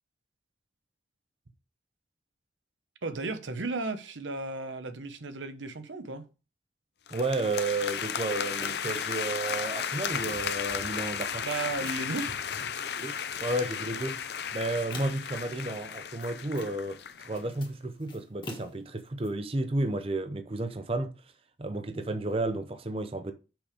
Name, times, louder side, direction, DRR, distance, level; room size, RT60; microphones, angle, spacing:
voice 1, 3.0-6.2 11.4-12.4, right 3 dB, 85° right, 0.9 m, -34 dB
sound 1, 7.1-17.4, left 7 dB, 60° left, 0.6 m, -34 dB
voice 2, 7.1-11.4 13.0-14.2 14.5-21.1 21.6-23.3, right 2 dB, 30° right, 0.6 m, -32 dB
sound 2, 8.3-9.0 9.6-10.7 11.2-12.2 12.7-13.6 14.3-15.4 15.9-17.0 17.2-19.3, left 2 dB, 25° left, 1.5 m, -47 dB
6.1 x 5.1 x 4.9 m
head